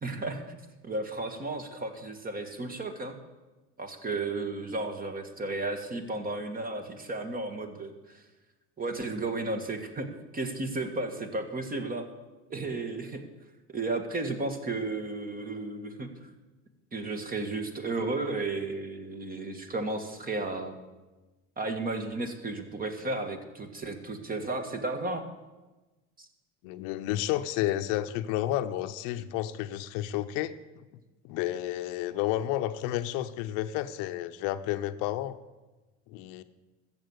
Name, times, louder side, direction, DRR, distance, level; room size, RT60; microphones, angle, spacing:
voice 1, 0.0-0.6 0.8-3.2 3.8-8.2 8.8-10.1 10.3-12.1 12.5-13.2 13.7-16.3 16.9-20.8 21.6-25.2 26.2-26.3, right 2 dB, 30° right, 6 dB, 1.8 m, -33 dB
voice 2, 26.6-30.6 31.2-35.4 36.1-36.4, left 13 dB, 85° left, 11 dB, 0.8 m, -31 dB
14.0 x 7.5 x 8.1 m, 1.2 s
supercardioid pair, 100°, 31 cm